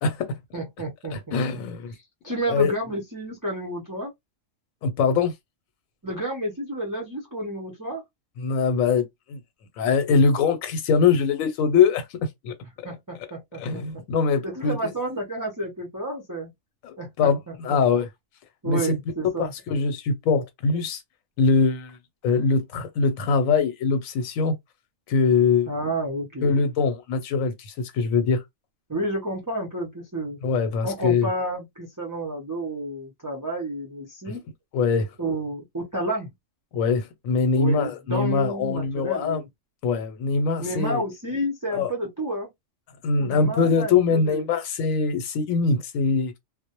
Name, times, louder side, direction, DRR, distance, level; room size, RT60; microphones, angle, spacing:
voice 1, 0.0-0.4 1.1-1.9 2.5-2.7 4.8-5.3 8.4-9.4 9.8-12.5 13.6-14.9 16.8-18.1 18.6-18.9 19.4-21.0 21.4-22.0 22.2-24.6 25.1-25.7 26.4-28.4 30.4-31.3 34.3-34.4 34.7-35.1 36.7-39.4 39.8-41.0 41.7-41.9 43.0-46.3, left 5 dB, 85° left, 1.0 m, -23 dB
voice 2, 0.5-1.4 2.2-4.1 6.0-8.0 12.8-14.0 14.4-16.5 17.0-18.0 18.6-19.5 25.7-26.5 28.9-30.4 30.8-34.4 35.2-36.3 37.6-39.5 40.6-42.5 43.2-44.4, right 1 dB, 30° right, 0.4 m, -30 dB
2.2 x 2.0 x 2.8 m
omnidirectional pair, 1.4 m